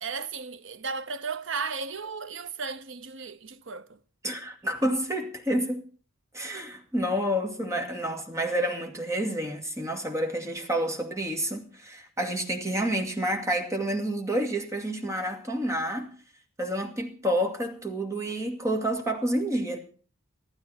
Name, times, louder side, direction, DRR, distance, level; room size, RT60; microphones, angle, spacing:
voice 1, 0.0-4.0 8.0-8.1, right 5 dB, 65° right, 0.9 m, -35 dB
voice 2, 4.2-5.8 6.3-16.1 16.6-19.8, right 1 dB, 15° right, 2.4 m, -29 dB
14.5 x 13.0 x 5.9 m
head